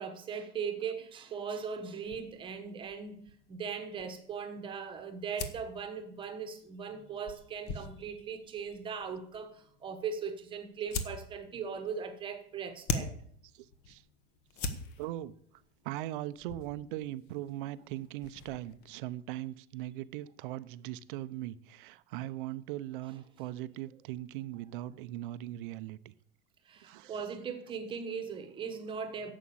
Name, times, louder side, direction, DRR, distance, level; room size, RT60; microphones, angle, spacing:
voice 1, 0.0-3.2 3.5-13.1 26.6-29.3, right 6 dB, 15° right, 1.2 m, -39 dB
sound 1, 2.0-18.9, left 4 dB, 35° left, 1.2 m, -44 dB
voice 2, 13.5-14.0 15.0-15.3 15.8-26.1 26.8-27.2, right 14 dB, 60° right, 0.7 m, -40 dB
11.5 x 7.4 x 8.6 m
supercardioid pair, 180°, 30 cm